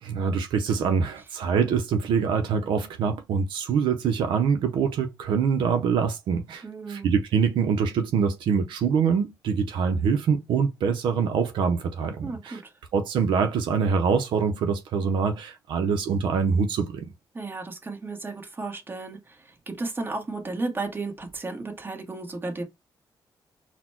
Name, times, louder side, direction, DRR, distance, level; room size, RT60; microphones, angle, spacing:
voice 1, 0.0-12.6 12.9-17.1, right 6 dB, 85° right, 0.6 m, -24 dB
voice 2, 6.6-7.1 12.2-12.7 17.3-22.6, right 3 dB, 25° right, 1.3 m, -34 dB
4.1 x 2.2 x 4.3 m
cardioid pair, 105°, 8 cm